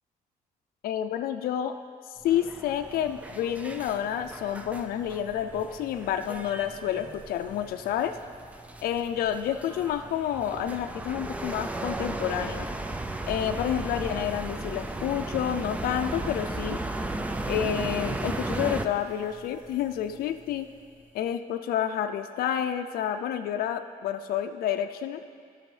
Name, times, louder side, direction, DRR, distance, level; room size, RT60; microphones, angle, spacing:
voice 1, 0.8-1.8 2.1-8.2 8.8-12.7 13.2-16.8 17.5-20.7 21.1-25.2, left 10 dB, 85° left, 7 dB, 0.4 m, -29 dB
sound 1, 2.1-21.3, equal, 30° right, 1.8 m, -53 dB
sound 2, 2.3-18.9, right 2 dB, 10° right, 0.3 m, -35 dB
17.0 x 6.2 x 3.2 m, 2.2 s
cardioid pair, 145°, 15 cm